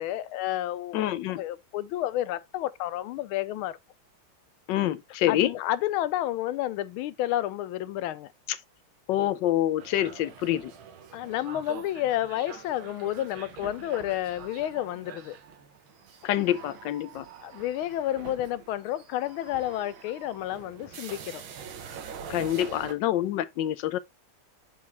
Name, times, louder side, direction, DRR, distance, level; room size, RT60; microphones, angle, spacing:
voice 1, 0.0-1.0 1.4-3.8 5.3-8.3 11.1-15.4 17.4-21.4, left 13 dB, 85° left, 1.4 m, -30 dB
voice 2, 0.9-1.4 4.7-5.5 9.1-10.7 16.2-17.2 22.3-24.0, left 13 dB, 70° left, 1.2 m, -26 dB
sound 1, 9.8-22.9, right 6 dB, 75° right, 1.8 m, -45 dB
7.3 x 4.7 x 3.2 m
omnidirectional pair, 2.3 m